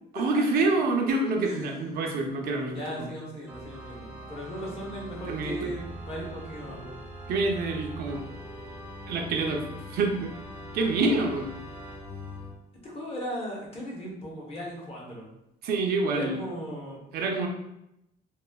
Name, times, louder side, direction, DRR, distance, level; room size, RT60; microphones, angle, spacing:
voice 1, 0.1-3.1 5.3-5.7 7.3-8.2 9.1-10.4 10.7-11.5 15.6-16.4 17.1-17.5, right 3 dB, 65° right, 2 dB, 0.5 m, -27 dB
voice 2, 1.4-1.8 2.7-7.0 12.8-15.3 16.1-17.0, equal, 35° left, -3 dB, 0.9 m, -37 dB
Organ, 3.5-12.6, equal, 10° right, 0.6 m, -42 dB
3.0 x 2.0 x 2.2 m, 0.83 s
cardioid pair, 110°, 17 cm